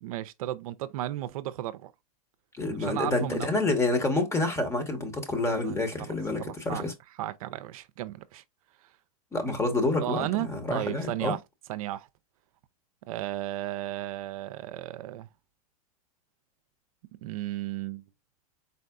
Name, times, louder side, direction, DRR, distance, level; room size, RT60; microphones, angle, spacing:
voice 1, 0.0-1.9 2.8-3.6 5.6-5.8 6.4-6.8 7.2-8.4 10.0-11.4 11.7-12.1 13.1-15.3 17.2-18.0, right 14 dB, 65° right, 0.5 m, -34 dB
voice 2, 2.5-6.9 9.3-11.3, left 2 dB, 15° left, 1.2 m, -28 dB
4.3 x 4.1 x 2.5 m
hypercardioid pair, 120°, 19 cm